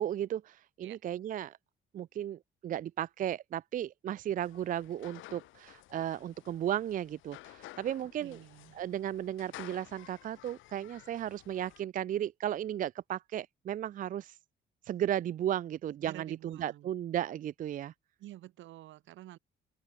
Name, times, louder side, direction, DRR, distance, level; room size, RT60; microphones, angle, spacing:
voice 1, 0.0-1.6 1.9-8.4 8.7-14.4 14.9-17.9, right 11 dB, 45° right, 0.5 m, -35 dB
sound 1, 4.4-11.8, left 16 dB, 85° left, 0.9 m, -53 dB
voice 2, 8.1-8.8 16.0-16.9 18.2-19.4, right 15 dB, 75° right, 1.5 m, -49 dB
open air
cardioid pair, 170°, 20 cm